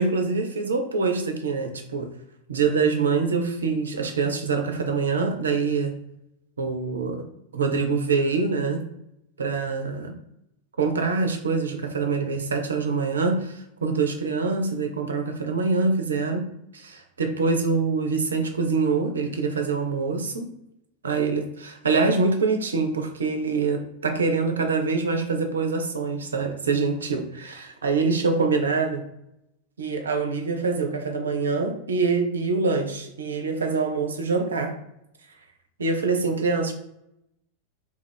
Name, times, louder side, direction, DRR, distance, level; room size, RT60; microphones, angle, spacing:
voice 1, 0.0-2.1 2.5-6.0 6.6-7.3 7.5-8.8 9.4-10.2 10.8-16.5 16.7-20.5 21.0-29.1 29.8-34.7 35.8-36.7, right 4 dB, 70° right, 5 dB, 0.5 m, -25 dB
2.4 x 2.2 x 3.4 m, 0.83 s
figure-of-eight pair, 90°, 0 cm